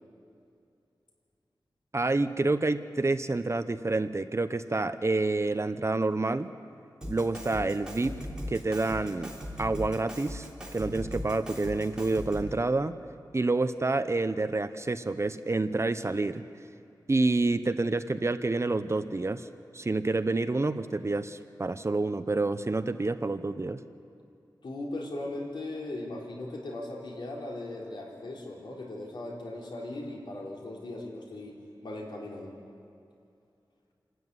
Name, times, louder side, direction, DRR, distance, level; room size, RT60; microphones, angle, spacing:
voice 1, 1.9-6.5 7.0-8.1 8.5-9.3 9.6-10.5 10.7-13.0 13.3-16.4 17.1-19.5 19.7-23.8, right 3 dB, 35° right, 11 dB, 0.9 m, -28 dB
Drum kit, 7.0-12.6, equal, 10° right, 3.7 m, -39 dB
voice 2, 24.6-31.6 31.8-32.5, left 2 dB, 85° left, -1 dB, 3.9 m, -38 dB
27.5 x 13.0 x 9.8 m, 2.5 s
wide cardioid pair, 85°, 8 cm